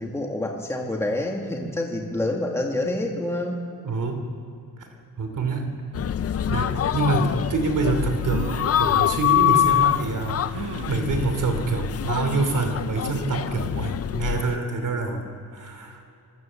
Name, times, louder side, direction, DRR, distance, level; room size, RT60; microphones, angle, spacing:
voice 1, 0.0-3.6, left 1 dB, 5° left, 1 dB, 1.8 m, -27 dB
voice 2, 3.8-4.3 4.8-4.9 5.2-6.0 6.5-16.0, right 3 dB, 50° right, 6 dB, 2.8 m, -26 dB
sound 1, 5.9-14.6, left 11 dB, 40° left, 0.4 m, -25 dB
sound 2, 8.3-8.8 9.6-9.7 10.5-11.0 12.3-12.8 13.3-13.4 13.7-13.8, right 8 dB, 80° right, 1.5 m, -36 dB
26.0 x 20.0 x 7.5 m, 2.8 s
wide cardioid pair, 155°, 40 cm